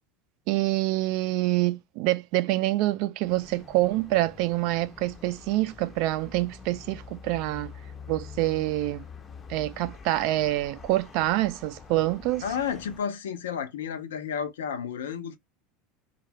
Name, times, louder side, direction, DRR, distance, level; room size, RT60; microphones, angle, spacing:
voice 1, 0.5-7.7 8.1-9.0 9.5-12.5, right 17 dB, 65° right, 0.4 m, -26 dB
sound 1, 3.2-13.0, left 5 dB, 30° left, 0.6 m, -46 dB
voice 2, 12.4-15.4, left 7 dB, 85° left, 0.5 m, -32 dB
2.3 x 2.0 x 3.3 m
hypercardioid pair, 85°, 0 cm